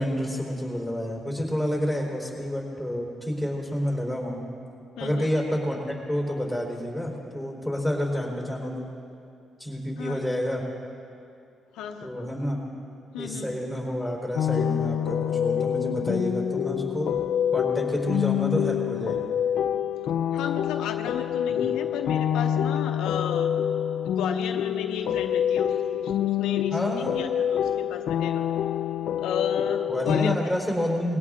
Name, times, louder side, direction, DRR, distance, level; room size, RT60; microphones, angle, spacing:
voice 1, 0.0-4.4 5.0-8.9 9.6-10.6 12.0-12.6 13.2-17.1 17.5-19.3 21.5-21.7 26.7-27.3 29.9-31.2, equal, 5° right, -2 dB, 3.9 m, -29 dB
voice 2, 5.0-5.3 10.0-10.2 11.7-12.3 13.1-13.5 20.3-23.5 24.0-26.9 27.2-28.4 29.2-30.3, left 7 dB, 90° left, 5 dB, 0.8 m, -34 dB
sound 1, 14.4-30.4, left 9 dB, 75° left, 0.4 m, -26 dB
21.0 x 17.0 x 3.7 m, 2.6 s
cardioid pair, 90°, 0 cm